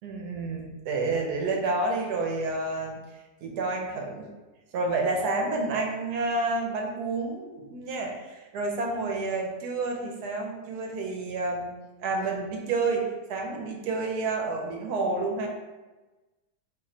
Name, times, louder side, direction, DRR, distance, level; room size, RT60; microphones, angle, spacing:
voice 1, 0.0-3.0 3.4-4.3 4.7-11.7 12.0-15.5, right 3 dB, 70° right, 1 dB, 1.1 m, -29 dB
2.9 x 2.1 x 3.7 m, 1.2 s
omnidirectional pair, 1.9 m